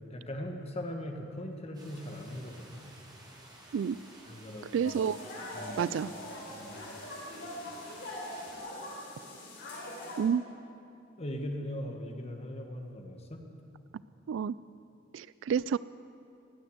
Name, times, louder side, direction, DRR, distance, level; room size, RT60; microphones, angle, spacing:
voice 1, 0.1-2.9 4.3-4.9 5.5-5.8 6.5-6.8 11.2-13.4, left 1 dB, 35° left, 3 dB, 1.5 m, -40 dB
sound 1, 1.7-8.6, right 1 dB, 20° right, 3.0 m, -54 dB
voice 2, 4.7-5.2 5.8-6.1 10.2-10.4 14.3-14.5 15.1-15.8, right 7 dB, 70° right, 18 dB, 0.3 m, -29 dB
sound 2, 4.8-10.2, left 1 dB, 60° left, 3.8 m, -42 dB
18.5 x 9.6 x 8.0 m, 2.6 s
head